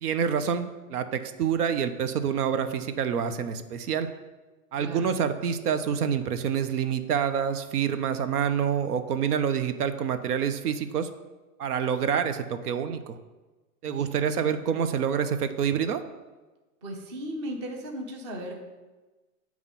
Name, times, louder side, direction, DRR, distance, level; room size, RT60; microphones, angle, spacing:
voice 1, 0.0-4.1 4.7-11.1 11.6-13.2 13.8-16.0, right 7 dB, 90° right, 10 dB, 0.7 m, -27 dB
voice 2, 4.7-5.1 13.8-14.6 16.8-18.6, right 1 dB, 20° right, 2 dB, 0.5 m, -37 dB
8.4 x 3.1 x 5.4 m, 1.2 s
hypercardioid pair, 160°, 45 cm